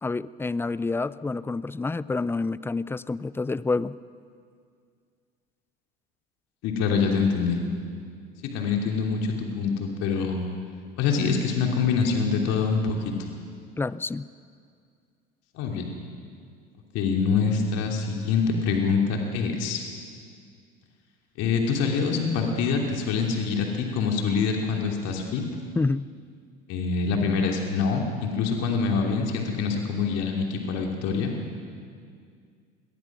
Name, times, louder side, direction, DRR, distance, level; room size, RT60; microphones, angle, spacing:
voice 1, 0.0-4.0 13.8-14.3 25.8-26.1, left 3 dB, 10° left, 19 dB, 0.5 m, -28 dB
voice 2, 6.6-7.6 8.5-10.5 11.0-13.1 15.5-15.9 16.9-19.8 21.4-25.4 26.7-31.3, left 5 dB, 55° left, 1 dB, 3.1 m, -25 dB
26.0 x 18.5 x 6.1 m, 2.2 s
hypercardioid pair, 75°, 29 cm